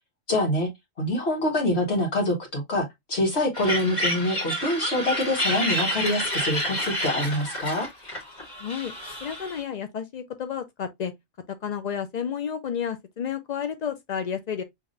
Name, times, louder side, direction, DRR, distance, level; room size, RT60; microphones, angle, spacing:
voice 1, 0.3-0.7 1.0-7.9, left 1 dB, 55° left, 1.6 m, -25 dB
sound 1, 3.5-9.6, equal, 35° left, 1.5 m, -29 dB
voice 2, 8.6-8.9 9.2-11.1 11.6-14.6, left 8 dB, 75° left, 0.3 m, -31 dB
5.8 x 3.0 x 2.5 m
omnidirectional pair, 1.4 m